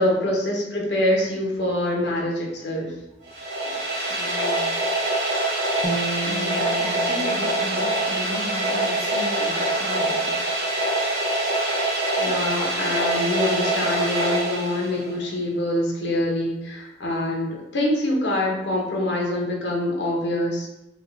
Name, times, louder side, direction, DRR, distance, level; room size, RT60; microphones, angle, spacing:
voice 1, 0.0-2.9 12.2-20.7, left 1 dB, 70° left, -1 dB, 0.8 m, -25 dB
sound 1, 3.3-15.2, right 1 dB, 65° right, 0.9 m, -24 dB
voice 2, 3.6-4.8 5.9-10.4, left 1 dB, 15° left, -8 dB, 1.2 m, -35 dB
sound 2, 5.8-9.2, right 3 dB, 30° right, 0.5 m, -34 dB
3.5 x 2.2 x 3.4 m, 0.93 s
head